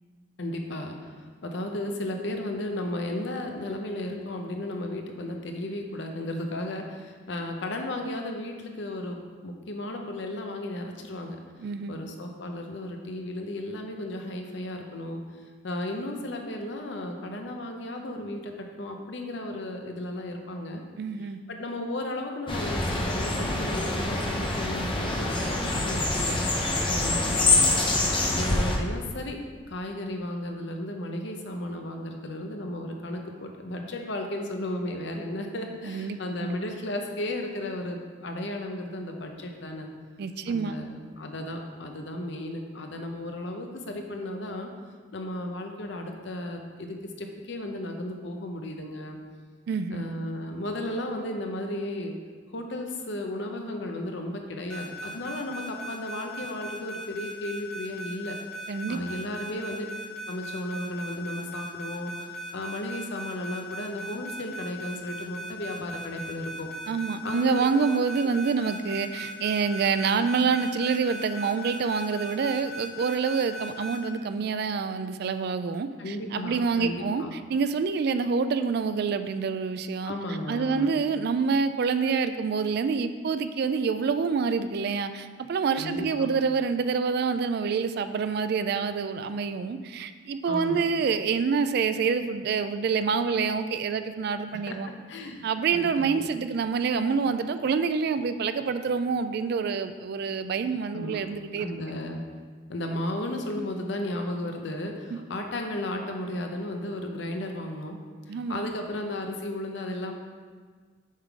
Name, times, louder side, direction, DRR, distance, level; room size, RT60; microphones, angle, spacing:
voice 1, 0.4-11.4 11.9-15.2 15.6-20.8 21.5-26.4 26.9-27.7 28.3-29.4 29.7-39.9 40.5-44.7 45.1-49.2 49.9-52.1 52.5-58.4 58.9-59.9 60.3-66.7 67.2-67.7 76.0-77.3 80.0-80.9 85.8-86.3 90.5-90.8 94.5-94.8 95.1-95.5 95.7-96.1 100.9-101.2 101.6-102.2 102.7-108.0 108.3-110.1, left 1 dB, 60° left, 3 dB, 0.7 m, -34 dB
voice 2, 11.6-12.0 21.0-21.4 35.8-36.6 40.2-40.8 49.7-50.0 58.7-59.0 66.9-80.1 80.5-94.9 95.4-101.7 108.3-108.6, right 5 dB, 55° right, 10 dB, 0.3 m, -27 dB
sound 1, 22.5-28.8, left 2 dB, 25° left, 0.7 m, -25 dB
sound 2, 54.7-74.0, right 1 dB, 5° left, 1.5 m, -38 dB
7.4 x 3.7 x 4.6 m, 1.6 s
head